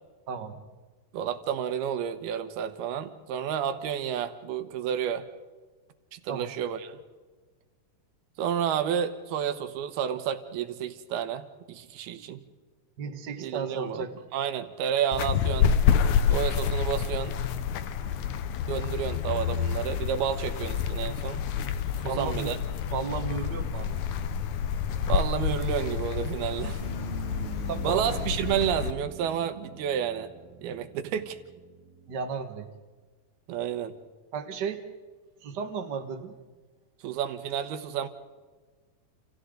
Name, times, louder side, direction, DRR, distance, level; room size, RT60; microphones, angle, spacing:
voice 1, 0.3-0.6 6.3-6.5 13.0-14.1 22.0-22.5 22.8-24.0 27.7-28.3 32.1-32.7 34.3-34.8 35.4-36.4, right 6 dB, 50° right, 4 dB, 1.3 m, -34 dB
voice 2, 1.1-5.2 6.1-7.0 8.4-12.4 13.4-14.0 14.3-15.7 16.3-17.4 18.0-18.2 18.7-21.5 22.2-22.6 25.1-26.8 27.8-30.3 30.6-31.4 33.5-33.9 37.0-38.1, right 9 dB, 85° right, 9 dB, 3.2 m, -30 dB
sound 1, 15.1-28.9, left 7 dB, 70° left, 1.9 m, -28 dB
sound 2, 26.8-32.6, right 8 dB, 70° right, 2.8 m, -44 dB
29.0 x 29.0 x 3.9 m, 1.4 s
omnidirectional pair, 4.4 m